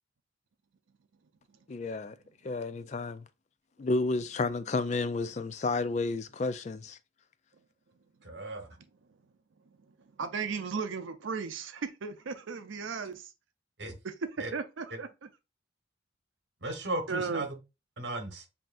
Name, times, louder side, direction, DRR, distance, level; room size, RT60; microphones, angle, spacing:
voice 1, 1.7-2.2 2.4-3.2 3.8-7.0, left 3 dB, 35° left, 0.3 m, -31 dB
voice 2, 8.2-8.7 13.8-13.9 14.4-14.5 16.6-17.5 18.0-18.5, right 2 dB, 65° right, 1.2 m, -35 dB
voice 3, 10.2-13.3 14.0-15.3 17.1-17.5, right 5 dB, 85° right, 0.5 m, -35 dB
7.5 x 2.8 x 2.5 m
head